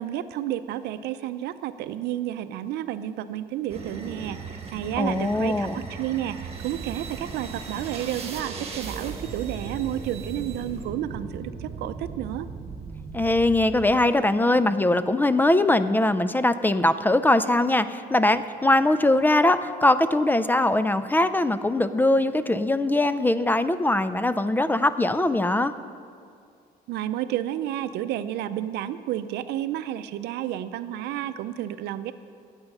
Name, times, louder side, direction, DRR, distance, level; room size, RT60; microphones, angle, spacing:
voice 1, 0.0-12.5 26.9-32.1, right 12 dB, 80° right, 12 dB, 0.6 m, -31 dB
sound 1, 3.7-14.3, right 5 dB, 40° right, 1.8 m, -37 dB
voice 2, 5.0-5.8 13.1-25.7, left 1 dB, 10° left, 13 dB, 0.4 m, -21 dB
15.5 x 8.2 x 5.4 m, 2.3 s
cardioid pair, 110°, 17 cm